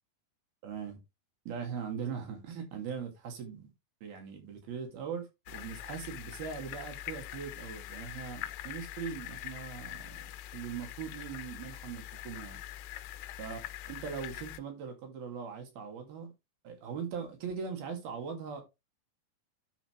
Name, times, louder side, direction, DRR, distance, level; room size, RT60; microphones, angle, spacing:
voice 1, 0.6-1.0 1.5-3.7 4.0-12.6 13.4-13.6 13.9-16.3 16.6-18.6, right 6 dB, 60° right, 4.0 m, -40 dB
sound 1, 5.5-14.6, left 13 dB, 90° left, 3.1 m, -43 dB
10.0 x 6.8 x 3.1 m
omnidirectional pair, 5.1 m